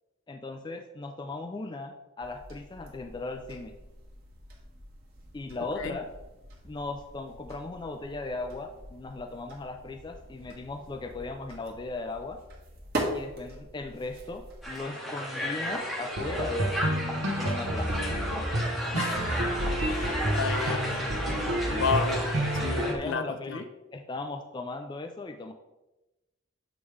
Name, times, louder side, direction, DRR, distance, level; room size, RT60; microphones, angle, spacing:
voice 1, 0.3-3.7 5.3-6.1 6.6-12.4 13.1-18.1 20.7-20.8 21.7-25.5, left 3 dB, 20° left, 6 dB, 0.3 m, -38 dB
sound 1, 2.2-14.8, right 1 dB, 45° right, 1.2 m, -42 dB
Crowd, 14.6-22.9, equal, ahead, 0.8 m, -34 dB
sound 2, 16.2-23.0, right 1 dB, 70° right, 0.9 m, -30 dB
voice 2, 18.9-19.2 19.8-20.8 21.8-22.2 22.6-23.6, left 5 dB, 70° left, 9 dB, 0.5 m, -31 dB
7.1 x 4.8 x 3.3 m, 1.0 s
head